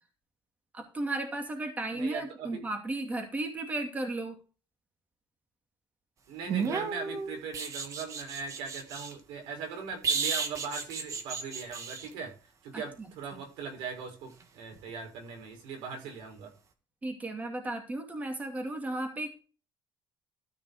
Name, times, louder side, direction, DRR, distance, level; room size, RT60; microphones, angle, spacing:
voice 1, 0.7-4.4 12.7-12.8 17.0-19.4, right 2 dB, 20° right, 4 dB, 2.6 m, -34 dB
voice 2, 1.9-2.6 6.3-12.3 12.6-16.5, right 5 dB, 90° right, 3 dB, 5.7 m, -40 dB
sound 1, 6.5-9.1 10.0-12.1 14.7-14.9, right 5 dB, 40° right, 1.9 m, -33 dB
13.5 x 5.7 x 5.0 m, 0.34 s
cardioid pair, 140°, 8 cm